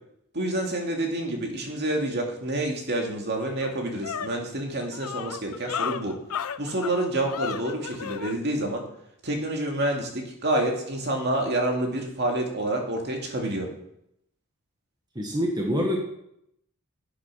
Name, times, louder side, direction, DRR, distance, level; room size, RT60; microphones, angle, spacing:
voice 1, 0.3-6.2 6.6-8.8 9.2-13.7, right 1 dB, 50° right, 2 dB, 2.3 m, -28 dB
sound 1, 2.9-3.0 3.4-8.4, left 7 dB, 85° left, 0.6 m, -34 dB
voice 2, 15.1-16.0, equal, 20° right, 0 dB, 1.5 m, -25 dB
11.5 x 8.5 x 5.7 m, 0.76 s
head